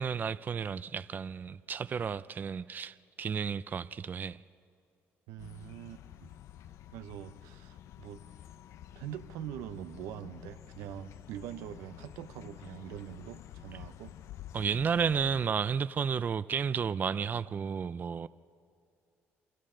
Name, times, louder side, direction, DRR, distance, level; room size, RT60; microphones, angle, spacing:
voice 1, 0.0-4.4 14.5-18.3, right 6 dB, 35° right, 0.4 m, -32 dB
voice 2, 5.3-6.3 6.9-8.2 9.0-14.1, right 11 dB, 90° right, 0.8 m, -44 dB
sound 1, 5.4-15.5, left 11 dB, 70° left, 0.6 m, -50 dB
29.0 x 25.0 x 3.8 m
cardioid pair, 90°, 5 cm